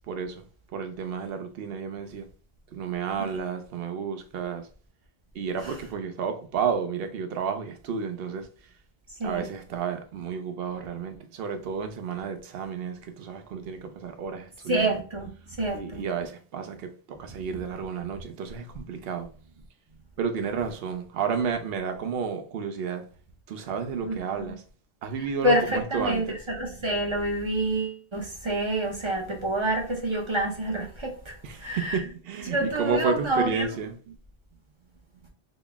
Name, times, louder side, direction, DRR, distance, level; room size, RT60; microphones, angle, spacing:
voice 1, 0.1-0.4 0.7-2.3 2.7-4.7 5.3-8.5 9.2-15.0 15.7-19.3 20.2-23.0 23.5-24.6 25.0-26.4 31.4-34.2, right 6 dB, 65° right, 0.8 m, -31 dB
voice 2, 14.7-15.3 15.6-16.0 24.0-24.5 25.4-31.3 31.6-32.0 32.5-33.6, right 1 dB, 30° right, 0.6 m, -27 dB
4.2 x 2.0 x 3.3 m
omnidirectional pair, 1.1 m